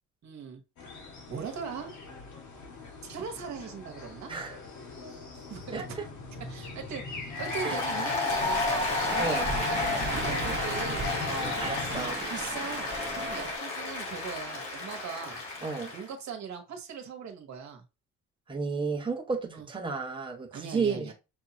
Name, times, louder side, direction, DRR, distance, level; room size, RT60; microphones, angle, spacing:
voice 1, 0.2-0.6 0.9-1.0 1.3-1.9 3.0-4.3 5.1-5.2 5.5-5.8 6.5-8.9 9.1-11.2 11.9-15.4 15.9-17.8 19.5-19.7 20.5-21.1, right 6 dB, 65° right, 1.2 m, -40 dB
sound 1, 0.8-12.1, left 3 dB, 75° left, 1.8 m, -41 dB
voice 2, 5.7-6.0 7.6-8.0 9.2-9.5 11.3-12.2 15.6-15.9 18.5-21.1, right 4 dB, 15° right, 1.4 m, -33 dB
Applause, 7.3-16.0, left 3 dB, 90° left, 2.0 m, -32 dB
sound 2, 8.3-13.6, right 4 dB, 35° right, 1.0 m, -37 dB
6.4 x 2.8 x 2.8 m
cardioid pair, 90°, 30 cm